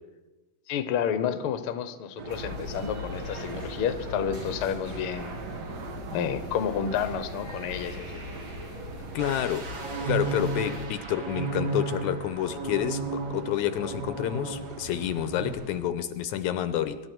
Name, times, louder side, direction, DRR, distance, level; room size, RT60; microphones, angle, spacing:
voice 1, 0.7-5.3 6.1-8.2, left 8 dB, 60° left, 10 dB, 1.5 m, -30 dB
sound 1, 2.2-15.8, right 4 dB, 55° right, 1.1 m, -42 dB
sound 2, 2.3-10.9, left 3 dB, 80° right, 6.4 m, -41 dB
voice 2, 9.1-9.7 10.1-17.0, left 11 dB, 80° left, 11 dB, 2.1 m, -29 dB
sound 3, 9.2-14.9 15.2-15.5, right 4 dB, 35° right, 1.5 m, -34 dB
24.5 x 12.0 x 4.6 m, 1.1 s
omnidirectional pair, 3.6 m